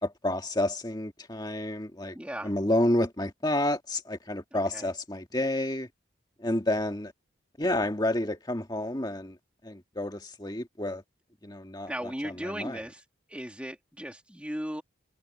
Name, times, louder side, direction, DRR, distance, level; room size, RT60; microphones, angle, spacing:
voice 1, 0.0-2.2 2.4-5.9 6.4-7.1 7.6-9.4 9.6-11.0 11.4-11.9 12.2-12.8, left 1 dB, 20° left, 1.8 m, -29 dB
voice 2, 2.1-2.5 4.5-4.9 11.9-14.8, equal, 5° right, 2.6 m, -37 dB
head